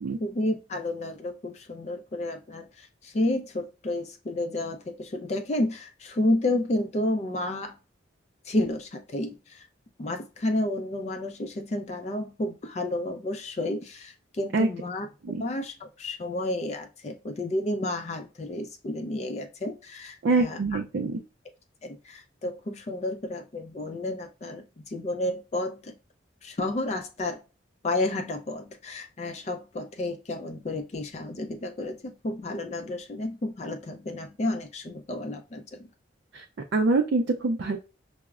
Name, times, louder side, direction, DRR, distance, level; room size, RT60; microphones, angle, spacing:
voice 1, 0.2-7.8 8.4-9.7 10.0-15.1 15.4-20.8 21.8-25.9 26.4-27.4 27.8-35.9, left 1 dB, 35° left, 0.3 m, -31 dB
voice 2, 20.2-21.2 36.3-36.4 36.7-37.8, right 3 dB, 65° right, 0.4 m, -24 dB
5.7 x 2.0 x 2.3 m
head